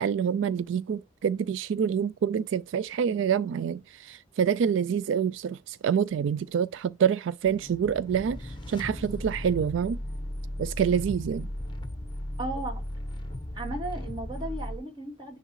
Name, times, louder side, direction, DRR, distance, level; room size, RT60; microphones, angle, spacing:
voice 1, 0.0-10.0 10.6-11.5, right 7 dB, 75° right, 0.3 m, -27 dB
sound 1, 7.4-14.8, left 1 dB, 25° left, 1.0 m, -36 dB
voice 2, 12.4-12.8 13.5-15.4, right 2 dB, 25° right, 3.4 m, -35 dB
10.0 x 3.6 x 3.1 m
head